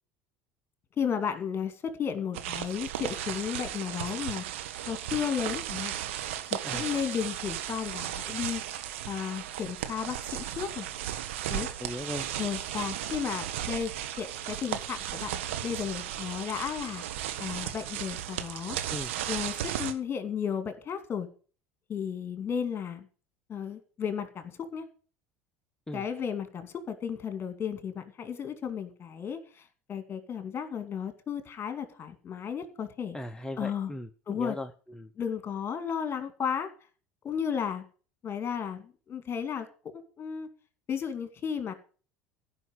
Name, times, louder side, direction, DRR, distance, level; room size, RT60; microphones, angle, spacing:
voice 1, 1.0-4.4 4.9-5.9 6.5-8.6 9.1-10.9 11.5-11.7 12.4-13.9 14.2-17.0 17.4-18.8 19.3-21.3 21.9-23.1 23.5-24.9 25.9-33.2 33.6-33.9 34.3-34.6 35.2-36.7 37.2-37.8 38.2-39.7 39.9-40.5 40.9-41.7, left 7 dB, 30° left, 9 dB, 2.5 m, -34 dB
sound 1, 2.3-19.9, right 11 dB, 65° right, 1.4 m, -35 dB
voice 2, 11.8-12.3 18.9-19.1 25.9-26.0 33.1-35.1, left 1 dB, 10° left, 6 dB, 0.9 m, -38 dB
15.5 x 5.6 x 8.1 m, 0.39 s
figure-of-eight pair, 70°, 7 cm